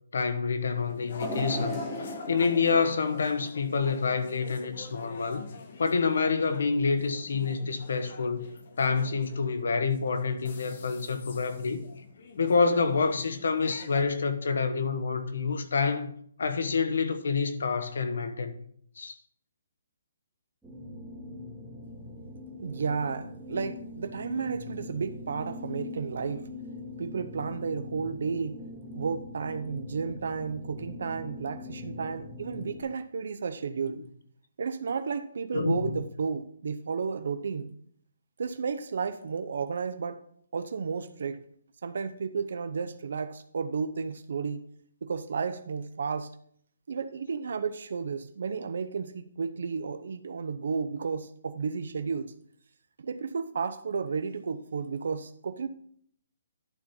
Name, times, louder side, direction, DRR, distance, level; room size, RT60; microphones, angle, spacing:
voice 1, 0.1-5.5 5.8-8.5 8.8-11.8 12.4-16.1 16.4-18.5 19.0-19.2 35.5-36.0, left 5 dB, 75° left, 1.2 m, -27 dB
sound 1, 0.9-14.0, left 5 dB, 50° left, 1.4 m, -47 dB
sound 2, 1.2-4.3 4.8-4.9 5.9-6.0, equal, 15° left, 1.7 m, -37 dB
sound 3, 20.6-32.8, left 2 dB, 5° right, 1.9 m, -42 dB
voice 2, 22.6-26.5 27.0-28.6 28.9-34.0 34.6-37.7 38.4-40.2 40.5-41.4 41.8-44.6 45.0-46.3 46.9-52.3 53.0-55.7, right 5 dB, 65° right, 0.7 m, -32 dB
11.0 x 4.4 x 5.5 m
hypercardioid pair, 165°, 0 cm